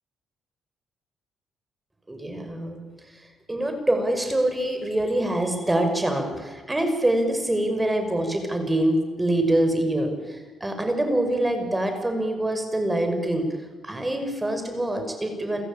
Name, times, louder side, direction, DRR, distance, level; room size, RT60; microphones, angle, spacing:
voice 1, 2.1-2.8 3.5-13.5 13.8-15.6, right 1 dB, 15° right, 6 dB, 5.7 m, -25 dB
29.0 x 15.0 x 8.9 m, 1.4 s
cardioid pair, 90°, 0 cm